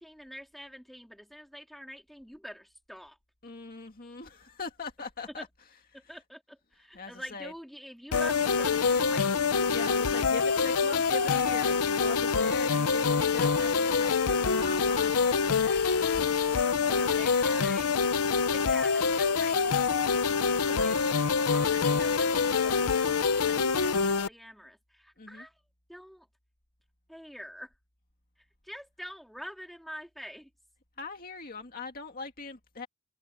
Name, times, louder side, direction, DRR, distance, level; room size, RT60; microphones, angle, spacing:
voice 1, 0.0-3.2 5.4-5.5 5.9-9.3 16.8-18.0 18.5-19.6 20.6-25.5 25.9-26.3 27.1-27.7 28.6-30.5, equal, ahead, 3.7 m, -45 dB
voice 2, 3.4-5.5 6.0-6.1 6.9-7.5 9.7-17.2 25.2-25.5 31.0-32.9, left 4 dB, 40° left, 2.1 m, -41 dB
sound 1, 8.1-24.3, left 5 dB, 85° left, 0.8 m, -26 dB
head